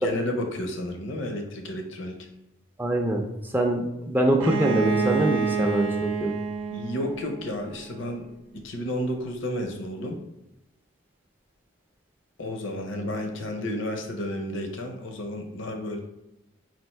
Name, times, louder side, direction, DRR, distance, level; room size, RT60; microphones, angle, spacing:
voice 1, 0.0-2.3 6.7-8.3 8.5-10.2 12.4-16.0, left 1 dB, 65° left, 4 dB, 0.7 m, -32 dB
voice 2, 2.8-3.2 3.5-6.3, right 1 dB, 10° right, 2 dB, 0.4 m, -24 dB
Bowed string instrument, 4.4-8.1, right 5 dB, 70° right, 0.6 m, -28 dB
4.4 x 2.5 x 4.3 m, 0.89 s
head